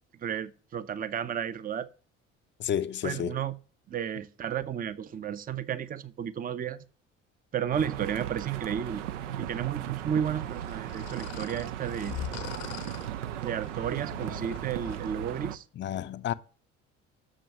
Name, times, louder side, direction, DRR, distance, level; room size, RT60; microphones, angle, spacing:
voice 1, 0.2-1.9 3.0-3.6 3.9-6.9 7.5-9.0 9.4-12.1 13.4-15.7, right 8 dB, 25° right, 0.6 m, -33 dB
voice 2, 2.6-3.4 15.8-16.3, left 10 dB, 30° left, 0.6 m, -31 dB
sound 1, 7.7-15.6, right 11 dB, 75° right, 0.6 m, -37 dB
sound 2, 10.5-15.2, left 11 dB, 65° left, 1.0 m, -42 dB
6.9 x 6.4 x 5.8 m
figure-of-eight pair, 55°, 37 cm